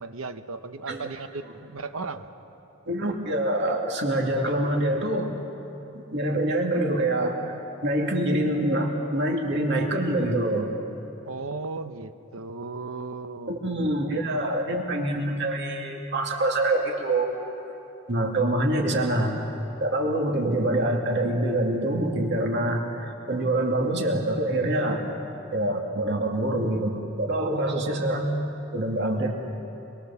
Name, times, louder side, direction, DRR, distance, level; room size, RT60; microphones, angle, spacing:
voice 1, 0.0-2.3 11.2-13.5, right 3 dB, 70° right, 10 dB, 0.9 m, -36 dB
voice 2, 2.9-5.3 5.9-7.5 7.8-10.7 13.5-17.3 18.1-19.4 19.8-25.0 25.5-28.3 28.7-29.4, right 1 dB, 55° right, 1 dB, 2.5 m, -25 dB
26.0 x 22.0 x 7.1 m, 3.0 s
head